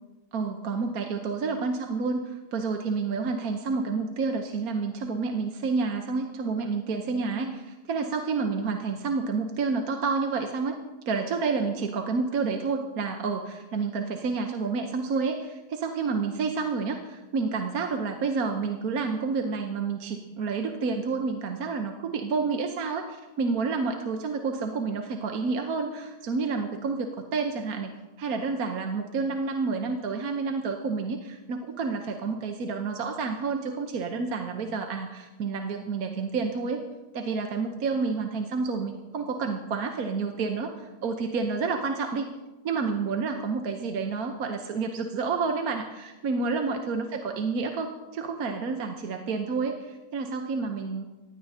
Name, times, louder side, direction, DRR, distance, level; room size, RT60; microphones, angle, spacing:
voice 1, 0.3-10.8 11.1-27.9 28.2-36.8 37.1-42.3 42.6-51.0, right 4 dB, 65° right, 4 dB, 1.4 m, -29 dB
18.5 x 15.5 x 2.8 m, 1.1 s
omnidirectional pair, 1.7 m